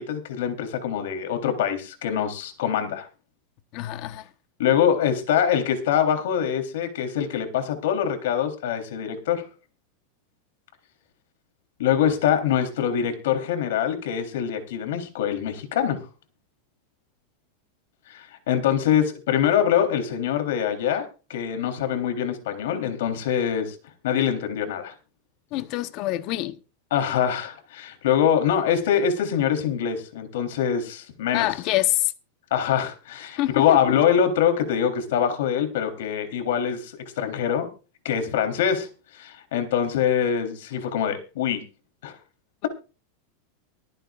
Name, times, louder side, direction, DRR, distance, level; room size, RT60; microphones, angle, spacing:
voice 1, 0.0-3.1 4.6-9.4 11.8-16.0 18.1-21.1 21.3-23.8 24.0-24.9 26.9-31.5 32.5-37.7 38.1-38.9 39.1-41.6 42.0-42.2, left 9 dB, 75° left, 3.4 m, -24 dB
voice 2, 3.7-4.3 25.5-26.5 31.3-32.1 33.4-33.8, left 16 dB, 40° left, 1.0 m, -25 dB
24.5 x 9.1 x 2.5 m
supercardioid pair, 165°, 0 cm